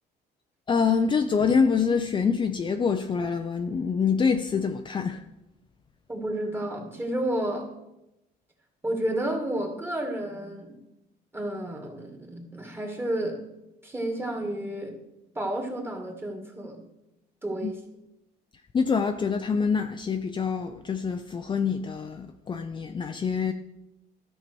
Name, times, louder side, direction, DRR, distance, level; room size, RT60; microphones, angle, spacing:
voice 1, 0.7-5.2 17.6-17.7 18.7-23.5, left 5 dB, 30° left, 0.5 m, -25 dB
voice 2, 6.1-7.7 8.8-10.8 11.3-13.4 13.8-15.0 15.4-16.9 17.4-17.8, right 1 dB, 15° right, 2.0 m, -31 dB
13.0 x 5.7 x 4.6 m
cardioid pair, 110°, 17 cm